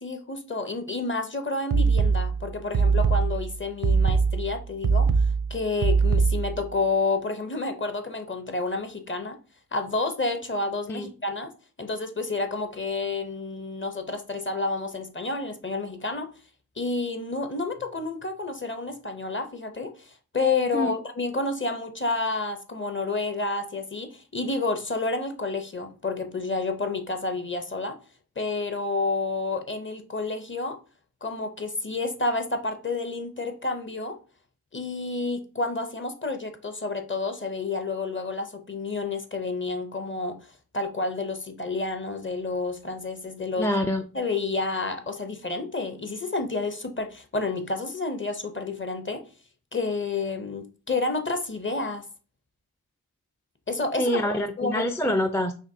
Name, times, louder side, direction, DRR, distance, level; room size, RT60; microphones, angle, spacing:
voice 1, 0.0-5.1 5.5-9.4 9.7-11.5 11.8-16.3 16.8-28.0 28.4-30.8 31.2-34.2 34.7-40.4 40.7-43.7 44.1-49.2 49.7-52.0 53.7-54.9, left 3 dB, 35° left, 0.7 m, -30 dB
sound 1, 1.7-6.7, right 5 dB, 75° right, 0.6 m, -22 dB
voice 2, 43.6-44.0 54.0-55.5, left 1 dB, 10° left, 0.3 m, -25 dB
5.1 x 3.0 x 2.7 m
cardioid pair, 45°, 36 cm